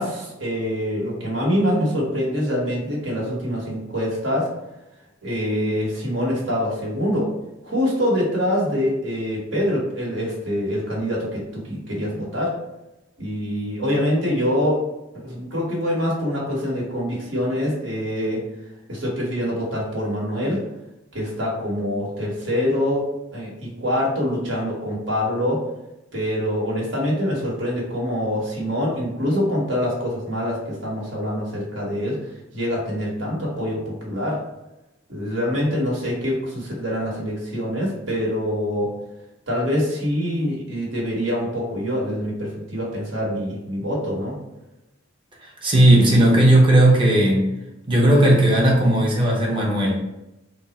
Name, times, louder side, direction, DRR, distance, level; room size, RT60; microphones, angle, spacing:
voice 1, 0.0-4.5 5.2-7.3 7.6-12.5 13.2-14.8 15.1-18.4 18.9-20.6 21.1-23.0 23.3-25.6 26.1-32.2 32.5-34.4 35.1-38.9 39.5-44.4, equal, 65° right, -4 dB, 1.2 m, -25 dB
voice 2, 45.4-47.5 47.9-50.0, right 1 dB, 25° right, -3 dB, 0.8 m, -16 dB
3.5 x 2.0 x 4.1 m, 0.96 s
head